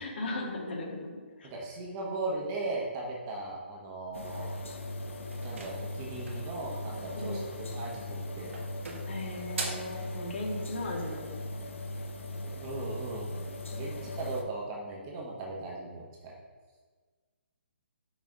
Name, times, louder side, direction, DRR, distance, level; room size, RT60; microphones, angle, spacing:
voice 1, 0.0-1.5 7.2-7.4 9.1-11.5, left 2 dB, 60° left, -1 dB, 1.8 m, -37 dB
voice 2, 1.4-4.5 5.4-7.4 7.7-8.5 12.4-13.3 13.7-16.3, right 2 dB, 20° right, -2 dB, 1.1 m, -37 dB
sound 1, 4.1-14.4, left 1 dB, 85° left, 1.0 m, -39 dB
sound 2, 5.3-6.5 7.8-8.2 8.5-10.0, right 3 dB, 80° right, 1.6 m, -40 dB
6.2 x 4.1 x 5.2 m, 1.4 s
hypercardioid pair, 165°, 7 cm